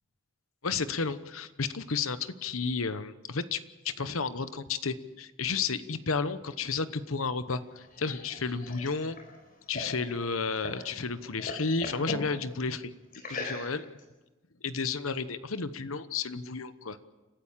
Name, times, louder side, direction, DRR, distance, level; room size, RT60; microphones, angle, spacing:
voice 1, 0.6-9.2 9.7-12.9 13.3-13.9 14.6-17.0, left 4 dB, 85° left, 13 dB, 1.1 m, -32 dB
sound 1, 7.5-10.9 11.2-12.3 13.1-14.0, left 2 dB, 45° left, 4.4 m, -40 dB
30.0 x 13.0 x 7.4 m, 1.1 s
head